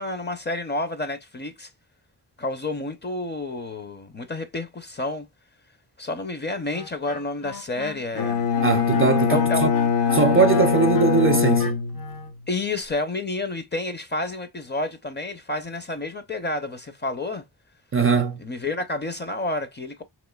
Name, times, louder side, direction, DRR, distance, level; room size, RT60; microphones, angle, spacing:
voice 1, 0.0-1.7 2.4-5.3 6.0-8.5 9.3-9.6 12.5-17.4 18.4-20.0, left 2 dB, 25° left, 0.6 m, -30 dB
Wind instrument woodwind instrument, 6.7-12.3, left 6 dB, 55° left, 0.8 m, -36 dB
Bowed string instrument, 8.2-12.4, left 6 dB, 90° left, 0.8 m, -22 dB
voice 2, 8.6-9.7 10.1-11.8 17.9-18.4, right 5 dB, 35° right, 0.4 m, -20 dB
3.6 x 3.0 x 2.2 m
wide cardioid pair, 115°, 41 cm